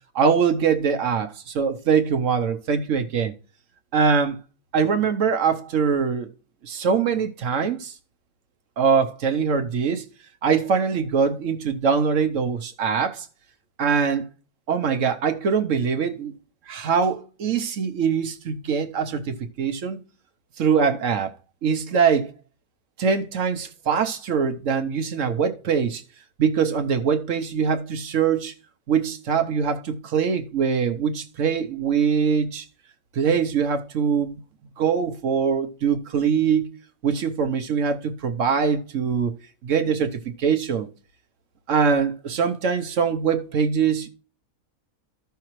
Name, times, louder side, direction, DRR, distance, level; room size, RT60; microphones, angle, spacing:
voice 1, 0.1-3.3 3.9-4.4 4.7-6.3 6.6-7.9 8.8-10.1 10.4-13.3 13.8-14.2 14.7-16.3 16.7-20.0 20.6-21.3 21.6-22.3 23.0-26.0 26.4-28.5 28.9-32.6 33.1-34.4 34.8-36.7 37.0-39.3 39.6-40.9 41.7-44.1, right 6 dB, 60° right, 1.0 m, -23 dB
14.0 x 5.7 x 3.1 m
omnidirectional pair, 1.6 m